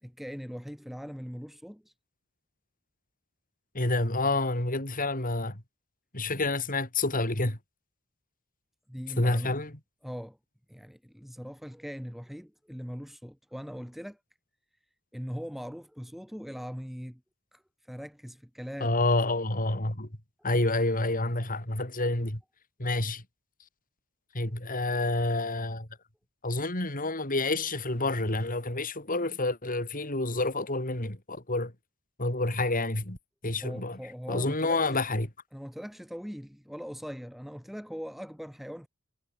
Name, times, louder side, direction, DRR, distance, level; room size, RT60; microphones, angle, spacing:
voice 1, 0.0-1.9 8.9-9.6 10.0-10.4 10.7-14.2 15.1-17.2 17.5-19.0 20.4-20.5 24.5-24.6 33.6-35.0 35.5-38.9, equal, ahead, 5.5 m, -41 dB
voice 2, 3.7-5.6 6.1-7.6 9.2-9.7 18.8-20.1 20.4-22.4 22.8-23.2 24.3-25.9 26.4-31.7 32.2-33.2 33.4-34.0 34.3-35.3, left 2 dB, 40° left, 4.6 m, -28 dB
head